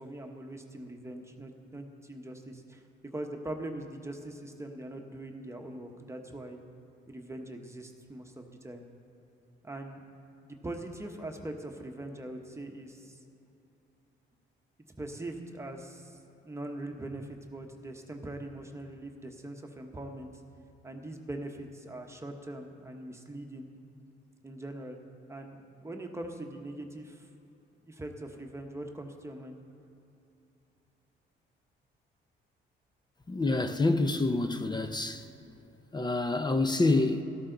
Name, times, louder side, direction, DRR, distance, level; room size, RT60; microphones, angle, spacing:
voice 1, 0.0-2.8 3.1-6.6 7.1-8.8 9.6-10.0 10.4-13.2 15.0-20.3 20.8-23.7 24.4-25.0 25.3-27.3 27.8-29.6, right 1 dB, 15° right, 1.1 m, -42 dB
voice 2, 33.3-35.3 35.9-37.2, left 2 dB, 20° left, 0.6 m, -27 dB
13.0 x 12.5 x 3.9 m
cardioid pair, 90°, 20 cm